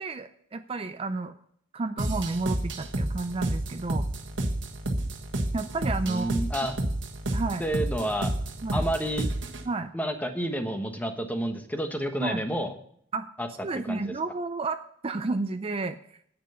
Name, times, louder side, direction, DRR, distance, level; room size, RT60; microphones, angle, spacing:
voice 1, 0.0-1.3 1.7-4.1 5.5-6.3 7.3-7.7 8.6-8.8 9.7-9.9 12.2-12.4 13.1-13.3 13.6-16.0, right 3 dB, 30° right, 9 dB, 0.5 m, -31 dB
sound 1, 2.0-9.6, right 1 dB, 70° right, 1.5 m, -30 dB
voice 2, 6.0-6.7 7.6-8.3 8.7-9.3 9.9-12.7 13.4-13.5 13.7-14.1, equal, 10° left, 6 dB, 1.2 m, -30 dB
10.0 x 8.7 x 5.7 m, 0.66 s
head